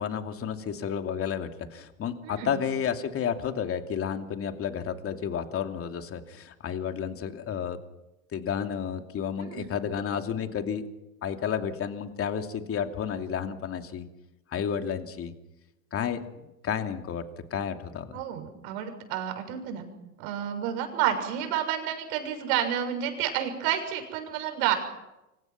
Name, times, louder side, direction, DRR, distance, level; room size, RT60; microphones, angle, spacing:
voice 1, 0.0-7.8 8.3-10.8 11.2-14.1 14.5-15.3 15.9-17.2 17.5-18.2, left 8 dB, 30° left, 6 dB, 2.8 m, -31 dB
voice 2, 2.2-2.6 9.4-9.7 18.1-19.8 20.2-24.7, right 10 dB, 60° right, 6 dB, 6.9 m, -30 dB
28.5 x 25.0 x 6.0 m, 0.96 s
hypercardioid pair, 105°, 46 cm